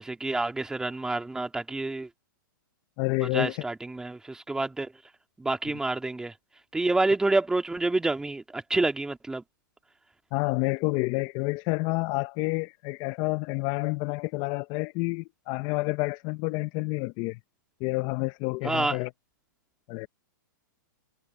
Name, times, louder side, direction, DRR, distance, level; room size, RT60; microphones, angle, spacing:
voice 1, 0.0-2.1 3.3-4.9 5.4-6.3 6.7-9.4 18.6-19.0, right 2 dB, 5° right, 2.1 m, -28 dB
voice 2, 3.0-3.6 10.3-17.4 17.8-19.1 19.9-20.1, left 24 dB, 35° left, 0.7 m, -29 dB
hypercardioid pair, 140°, 11 cm